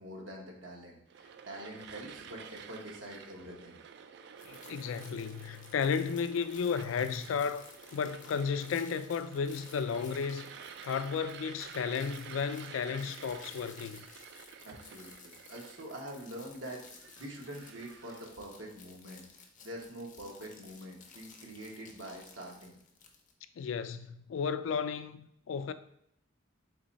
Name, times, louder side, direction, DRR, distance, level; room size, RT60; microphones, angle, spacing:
voice 1, 0.0-3.8 14.6-19.2 19.6-22.8, right 1 dB, 80° right, 1.2 m, -45 dB
sound 1, 1.1-18.4, right 7 dB, 60° right, 0.3 m, -51 dB
voice 2, 4.4-10.5 10.8-14.1 23.6-25.7, left 6 dB, 80° left, 0.3 m, -33 dB
sound 2, 4.4-23.3, left 5 dB, 40° left, 0.6 m, -56 dB
4.0 x 3.0 x 4.0 m
head